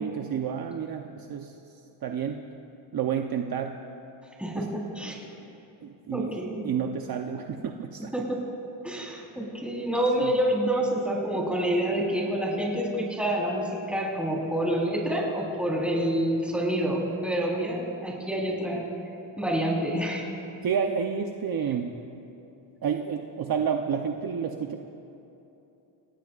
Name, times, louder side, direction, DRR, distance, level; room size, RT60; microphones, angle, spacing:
voice 1, 0.0-1.5 2.0-2.4 2.9-3.7 4.5-4.6 5.8-6.3 6.6-8.1 10.2-10.3 18.7-18.8 20.6-21.9 22.8-24.8, right 7 dB, 45° right, 3 dB, 0.9 m, -30 dB
voice 2, 4.4-5.1 6.1-6.7 8.1-8.4 8.8-18.9 19.4-20.3, right 1 dB, ahead, -3 dB, 4.1 m, -27 dB
29.0 x 17.5 x 2.5 m, 2.9 s
cardioid pair, 115°, 50 cm